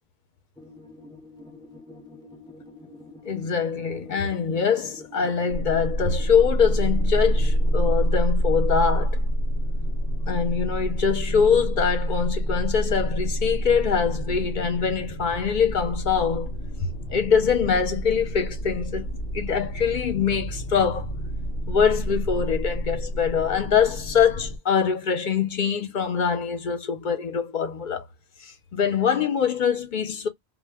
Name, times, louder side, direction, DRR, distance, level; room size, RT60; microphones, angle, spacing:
sound 1, 0.6-8.1, left 2 dB, 5° left, 0.4 m, -46 dB
voice 1, 3.3-9.2 10.3-16.5 17.1-19.1 19.3-21.1 21.7-28.1 28.4-30.3, left 6 dB, 55° left, 0.6 m, -23 dB
sound 2, 5.5-24.6, equal, 85° left, 0.9 m, -27 dB
2.1 x 2.1 x 3.3 m
omnidirectional pair, 1.1 m